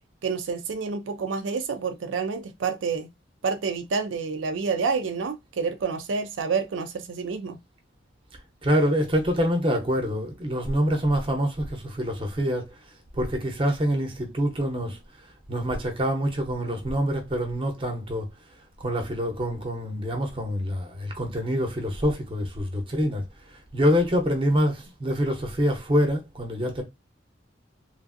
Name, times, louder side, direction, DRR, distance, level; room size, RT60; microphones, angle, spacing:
voice 1, 0.2-3.1 3.4-7.6, right 5 dB, 80° right, 0.4 m, -28 dB
voice 2, 8.6-12.8 13.1-15.0 15.5-18.3 18.8-23.2 23.7-26.8, equal, 25° right, 0.8 m, -25 dB
3.1 x 2.5 x 2.5 m
head